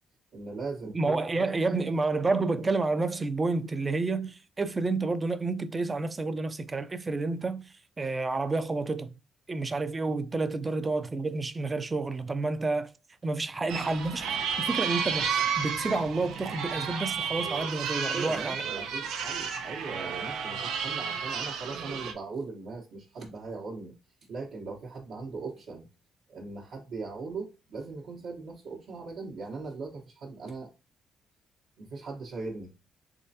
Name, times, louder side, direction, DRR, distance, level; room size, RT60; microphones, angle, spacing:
voice 1, 0.3-1.8 18.1-23.9 24.3-25.9 26.3-30.7 31.8-32.8, right 4 dB, 70° right, 1.0 m, -39 dB
voice 2, 0.9-7.7 8.0-9.1 9.5-12.9 13.2-18.6, right 3 dB, 25° right, 0.5 m, -29 dB
sound 1, 13.7-22.1, right 7 dB, 90° right, 0.6 m, -32 dB
3.6 x 3.2 x 2.7 m
cardioid pair, 90°, 0 cm